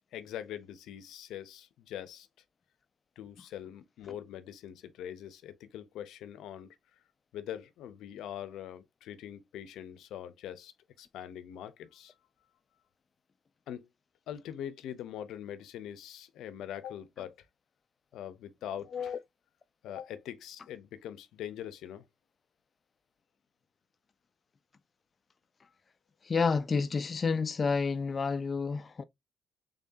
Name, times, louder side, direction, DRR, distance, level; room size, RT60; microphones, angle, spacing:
voice 1, 0.1-2.3 3.2-6.8 7.3-10.7 11.0-12.1 13.7-13.9 14.3-17.4 18.1-19.2 19.8-22.0, left 10 dB, 85° left, 0.6 m, -43 dB
voice 2, 26.2-29.0, left 5 dB, 35° left, 0.3 m, -30 dB
3.6 x 3.6 x 2.6 m
cardioid pair, 90°, 0 cm